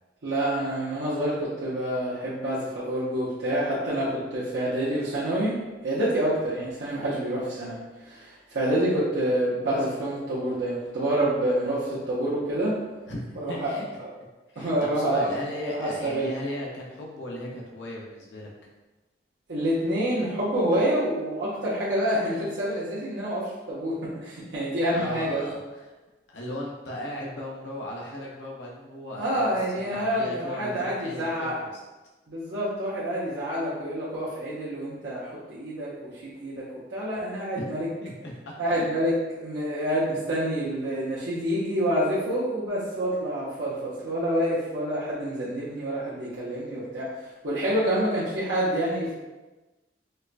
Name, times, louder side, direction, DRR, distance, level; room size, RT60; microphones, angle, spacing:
voice 1, 0.2-12.8 13.4-13.7 14.0-14.1 14.6-15.3 15.6-16.3 19.5-25.4 29.2-31.5 32.3-37.9 38.6-47.1 47.4-49.1, right 1 dB, 80° right, -9 dB, 0.7 m, -27 dB
voice 2, 13.1-14.0 14.5-18.5 24.9-25.8 26.3-29.6 29.9-31.8 37.6-37.7 38.0-38.9, left 1 dB, 85° left, -3 dB, 0.7 m, -37 dB
4.3 x 2.2 x 2.5 m, 1.1 s
head